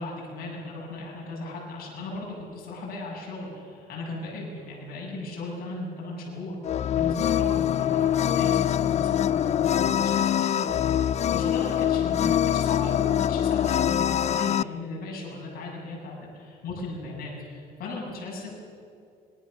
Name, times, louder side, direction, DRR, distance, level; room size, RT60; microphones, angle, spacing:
voice 1, 0.0-18.5, left 2 dB, 60° left, -3 dB, 7.6 m, -36 dB
sound 1, 6.6-14.6, left 10 dB, 40° left, 0.4 m, -24 dB
25.5 x 21.0 x 6.7 m, 2.4 s
cardioid pair, 110°, 17 cm